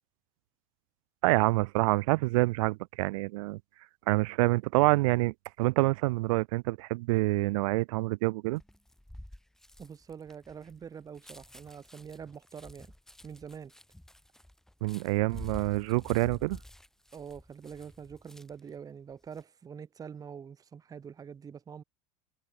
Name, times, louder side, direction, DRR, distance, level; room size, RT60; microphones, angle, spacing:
voice 1, 1.2-3.6 4.1-8.6 14.8-16.6, right 22 dB, 85° right, 0.5 m, -27 dB
sound 1, 8.6-18.7 19.1-19.4, left 1 dB, 5° left, 1.6 m, -49 dB
voice 2, 9.8-12.9 13.2-13.7 17.1-21.8, right 7 dB, 20° right, 0.6 m, -45 dB
supercardioid pair, 110°, 17 cm